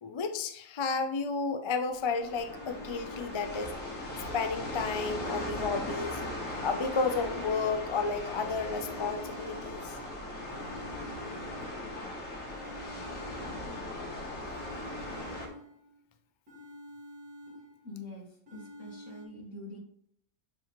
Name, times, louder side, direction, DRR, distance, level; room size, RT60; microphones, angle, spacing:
voice 1, 0.0-3.7 4.3-6.2 6.6-9.9, left 4 dB, 45° left, 8 dB, 0.3 m, -32 dB
sound 1, 1.9-15.5, left 1 dB, 85° left, 1.8 m, -39 dB
sound 2, 2.5-4.1 4.5-6.1 6.5-8.1 8.5-10.1 10.5-12.0 12.5-14.0 14.5-16.0 16.5-18.0 18.5-19.3, equal, 85° right, 2.1 m, -49 dB
voice 2, 17.8-19.8, left 2 dB, 70° left, 0 dB, 2.0 m, -45 dB
7.5 x 5.0 x 3.1 m, 0.67 s
omnidirectional pair, 1.3 m